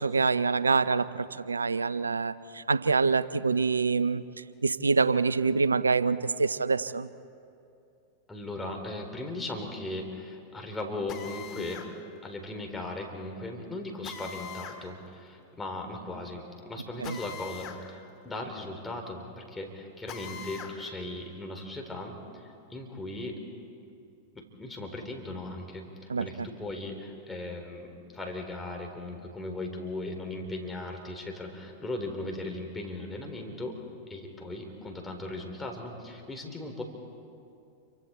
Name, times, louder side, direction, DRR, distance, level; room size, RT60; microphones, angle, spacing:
voice 1, 0.0-4.3 4.6-7.1 17.0-17.2 26.1-26.3, right 4 dB, 85° right, 17 dB, 0.6 m, -26 dB
voice 2, 8.3-11.8 12.2-23.4 24.4-33.8 34.1-36.8, left 2 dB, 10° left, 2 dB, 3.8 m, -38 dB
Drill, 11.1-11.9 14.0-14.8 17.0-17.8 18.2-18.3 20.1-20.8, left 7 dB, 40° left, 2.3 m, -42 dB
29.0 x 24.5 x 4.4 m, 2.6 s
hypercardioid pair, 95°, 0 cm